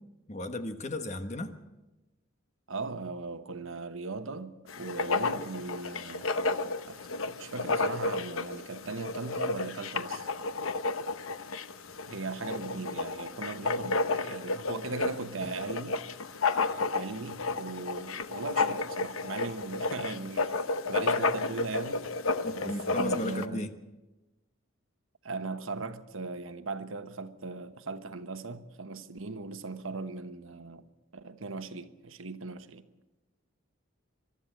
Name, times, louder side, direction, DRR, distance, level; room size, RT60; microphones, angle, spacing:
voice 1, 0.3-1.6 22.4-23.8, left 1 dB, 35° left, 1.2 m, -35 dB
voice 2, 2.7-6.3 6.8-10.3 12.1-16.0 16.9-22.1 22.5-23.7 25.2-30.8 31.1-32.9, right 3 dB, 75° right, 1.1 m, -39 dB
Writing, 4.7-23.5, left 3 dB, 80° left, 0.9 m, -32 dB
23.5 x 12.5 x 8.9 m
head